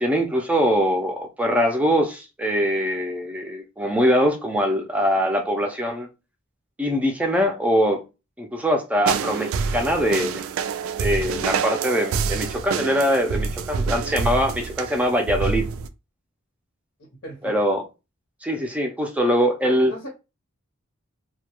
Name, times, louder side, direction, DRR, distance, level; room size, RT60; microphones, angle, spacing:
voice 1, 0.0-6.1 6.8-8.0 8.4-10.4 11.0-15.6 17.4-17.8 18.4-19.9, equal, 5° right, 0.4 m, -22 dB
sound 1, 9.1-15.9, right 5 dB, 85° right, 0.3 m, -27 dB
voice 2, 17.2-17.6 19.6-20.1, left 1 dB, 80° left, 1.0 m, -36 dB
2.2 x 2.1 x 2.9 m
head